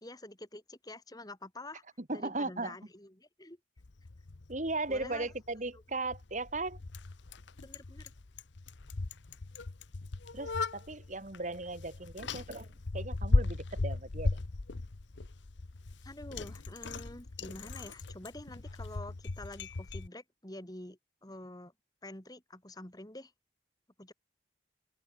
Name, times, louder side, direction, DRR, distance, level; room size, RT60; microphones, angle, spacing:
voice 1, 0.0-1.8 2.1-3.6 4.9-5.3 7.6-8.1 16.0-21.7 22.0-23.3 24.0-24.1, left 1 dB, 20° left, 2.5 m, -47 dB
voice 2, 2.0-2.8 4.5-6.8 10.3-14.4, right 2 dB, 40° right, 2.0 m, -37 dB
Bicycle, 3.8-20.1, left 2 dB, 75° left, 0.9 m, -37 dB
open air
head